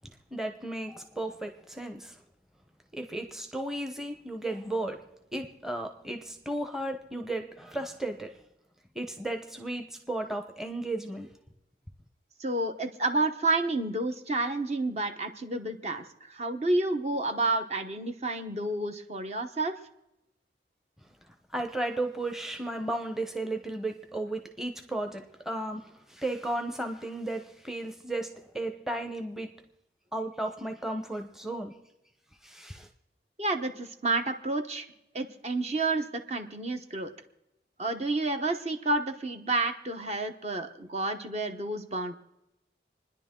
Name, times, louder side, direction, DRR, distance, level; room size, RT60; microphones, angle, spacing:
voice 1, 0.3-2.2 2.9-8.4 8.9-11.3 21.5-29.5 30.1-31.8 32.4-32.9, right 1 dB, ahead, 6 dB, 0.9 m, -34 dB
voice 2, 12.4-19.8 33.4-34.9 35.1-37.1 37.8-42.1, right 2 dB, 35° right, 6 dB, 1.0 m, -30 dB
27.5 x 10.5 x 3.8 m, 0.88 s
head